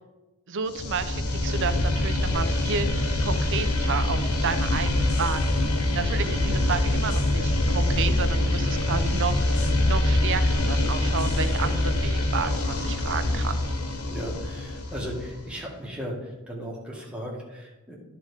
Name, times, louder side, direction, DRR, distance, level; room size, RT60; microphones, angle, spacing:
voice 1, 0.5-5.7 5.9-9.4 9.8-13.6, right 6 dB, 60° right, 9 dB, 0.6 m, -31 dB
sound 1, 0.7-15.5, left 1 dB, 85° left, 1.0 m, -24 dB
voice 2, 14.1-18.0, equal, 5° right, -3 dB, 1.7 m, -36 dB
11.5 x 4.0 x 4.9 m, 1.0 s
head